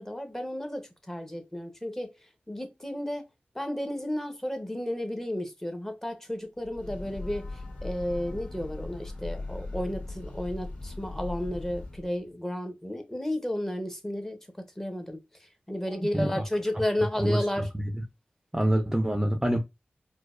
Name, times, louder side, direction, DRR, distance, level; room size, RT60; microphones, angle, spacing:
voice 1, 0.0-2.1 2.5-3.2 3.5-17.7, left 1 dB, 10° left, 0.8 m, -33 dB
Breathing / Train, 6.6-12.1, left 2 dB, 35° left, 1.7 m, -39 dB
voice 2, 15.9-16.4 17.2-17.7 18.5-19.6, right 1 dB, 15° right, 0.4 m, -26 dB
4.3 x 2.1 x 2.4 m
cardioid pair, 60°, 4 cm